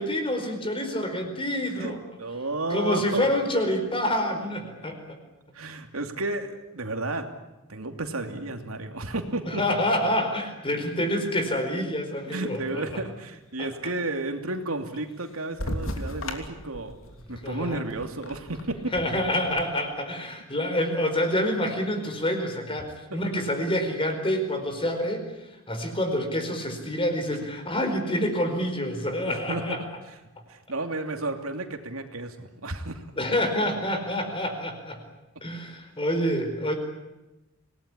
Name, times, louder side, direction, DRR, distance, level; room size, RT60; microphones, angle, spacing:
voice 1, 0.0-2.0 2.7-5.2 9.5-13.0 13.6-13.7 17.4-17.8 18.9-25.2 25.7-29.8 33.2-35.0 35.4-36.7, left 1 dB, 25° left, 6 dB, 4.7 m, -27 dB
voice 2, 1.8-3.3 5.5-7.3 7.7-9.6 12.3-17.0 17.3-18.9 23.1-23.2 29.3-29.8 30.5-33.0, right 2 dB, 80° right, 5 dB, 2.8 m, -32 dB
sound 1, 15.6-19.6, left 1 dB, 65° left, 3.0 m, -36 dB
26.5 x 19.0 x 10.0 m, 1.0 s
head